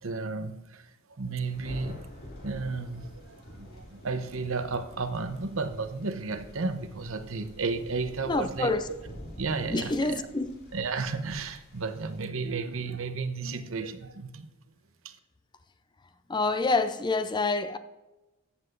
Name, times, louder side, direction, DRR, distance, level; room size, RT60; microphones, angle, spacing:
voice 1, 0.0-2.0 2.4-9.0 9.3-10.2 10.7-14.5 15.0-15.2, right 4 dB, 65° right, 0.8 m, -33 dB
Thunder, 1.4-12.2, left 1 dB, 45° left, 2.6 m, -47 dB
voice 2, 8.3-8.9 9.6-10.6 16.3-17.8, left 3 dB, 20° left, 0.5 m, -27 dB
14.0 x 7.7 x 2.6 m
head